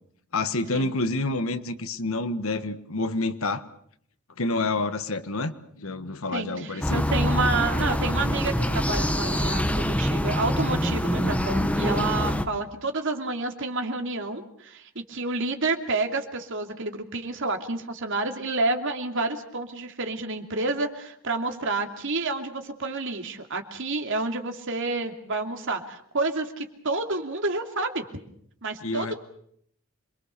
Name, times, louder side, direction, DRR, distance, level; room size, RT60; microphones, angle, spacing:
voice 1, 0.3-3.6 4.4-7.0 28.8-29.1, left 2 dB, 70° left, 11 dB, 1.5 m, -28 dB
voice 2, 6.3-28.0 28.6-29.1, right 3 dB, 60° right, 5 dB, 2.8 m, -29 dB
sound 1, 6.8-12.4, equal, 5° left, 1.3 m, -25 dB
27.0 x 23.0 x 6.8 m, 0.66 s
head